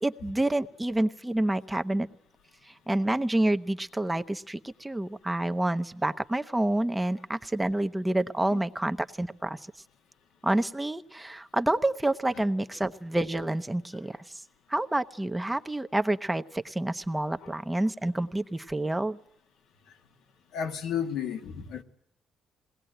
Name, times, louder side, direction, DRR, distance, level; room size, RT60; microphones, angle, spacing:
voice 1, 0.0-2.1 2.6-9.6 10.4-14.4 14.7-19.2, right 1 dB, 10° right, 0.9 m, -28 dB
voice 2, 20.5-21.8, left 8 dB, 80° left, 2.0 m, -32 dB
21.0 x 18.5 x 9.1 m
cardioid pair, 90°, 0 cm